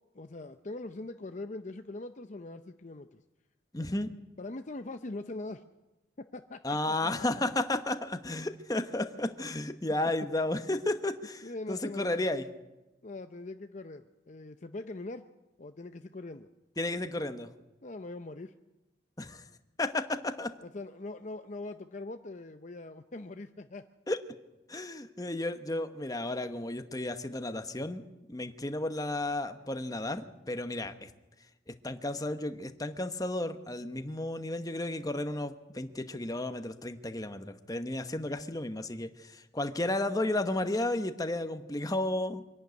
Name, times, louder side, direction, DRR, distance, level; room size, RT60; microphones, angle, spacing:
voice 1, 0.1-3.2 3.8-3.9 4.4-5.6 6.2-7.4 11.4-12.3 13.0-15.2 15.6-16.5 17.8-18.5 20.6-23.9, left 2 dB, 40° left, 8 dB, 0.6 m, -42 dB
voice 2, 3.7-4.1 6.6-12.5 16.8-17.5 19.2-19.4 19.8-20.5 24.1-24.2 24.7-28.0 28.3-31.1 31.8-42.4, left 1 dB, 20° left, 8 dB, 1.0 m, -33 dB
25.0 x 11.5 x 9.4 m, 1.1 s
head